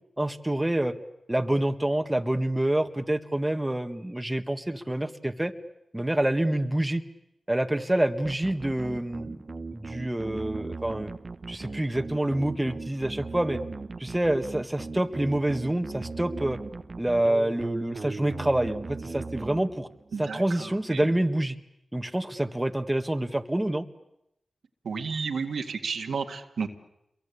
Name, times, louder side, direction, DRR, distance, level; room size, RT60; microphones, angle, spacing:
voice 1, 0.2-0.9 1.3-5.5 5.9-7.0 7.5-9.4 9.7-11.1 11.5-13.6 14.0-16.6 17.0-19.9 20.2-21.6 21.9-23.9, right 1 dB, 15° right, 6 dB, 1.8 m, -27 dB
sound 1, 8.2-20.1, right 3 dB, 55° right, 1.2 m, -38 dB
voice 2, 20.1-21.0 24.8-26.7, right 5 dB, 80° right, 5 dB, 2.0 m, -32 dB
27.5 x 23.0 x 8.5 m, 0.82 s
cardioid pair, 40°, 0 cm